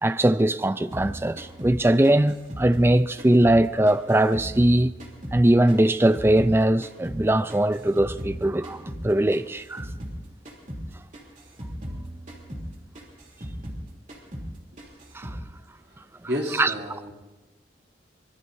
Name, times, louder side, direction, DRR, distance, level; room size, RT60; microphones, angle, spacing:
voice 1, 0.0-4.9 5.3-9.9 15.2-15.3 16.6-16.7, right 1 dB, 15° right, 0.4 m, -21 dB
sound 1, 0.9-3.6 3.9-6.6 6.8-10.2 10.4-10.9 11.1-13.8 14.1-14.5 14.8-15.4, equal, 45° right, 3.1 m, -37 dB
voice 2, 15.9-17.1, equal, 65° right, 2.8 m, -32 dB
24.5 x 20.5 x 2.7 m
head